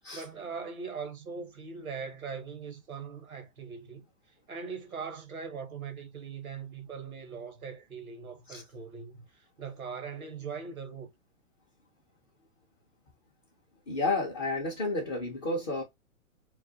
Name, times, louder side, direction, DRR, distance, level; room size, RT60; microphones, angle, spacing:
voice 1, 0.0-4.0 4.5-11.1, right 5 dB, 90° right, 0.9 m, -41 dB
voice 2, 13.9-15.8, left 2 dB, 15° left, 0.3 m, -31 dB
2.3 x 2.1 x 2.6 m
figure-of-eight pair, 115°, 41 cm